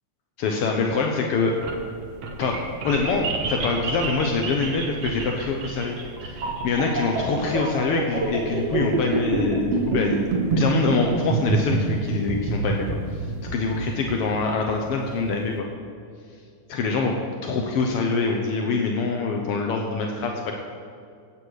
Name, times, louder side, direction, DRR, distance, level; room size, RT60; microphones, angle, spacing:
voice 1, 0.4-1.5 2.4-2.6 2.8-10.2 10.5-12.9 13.1-15.7 16.7-17.2 17.4-20.5, left 4 dB, 75° left, 2 dB, 1.3 m, -25 dB
sound 1, 1.4-15.5, right 3 dB, 55° right, 2.1 m, -27 dB
16.0 x 8.7 x 4.9 m, 2.3 s
omnidirectional pair, 3.7 m